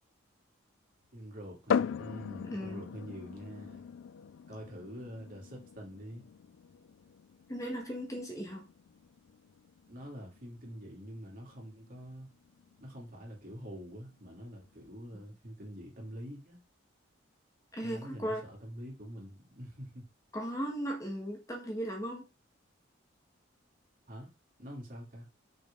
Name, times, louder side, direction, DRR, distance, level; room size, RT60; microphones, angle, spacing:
voice 1, 1.1-3.9 4.5-6.3 9.9-12.3 12.8-16.6 17.8-20.1 24.1-24.3 24.6-25.3, equal, 45° right, 3.2 m, -46 dB
sound 1, 1.7-15.2, left 7 dB, 70° left, 0.3 m, -40 dB
voice 2, 2.5-2.8 7.5-8.6 17.7-18.4 20.3-22.3, equal, 15° left, 1.4 m, -37 dB
6.6 x 6.1 x 3.8 m
head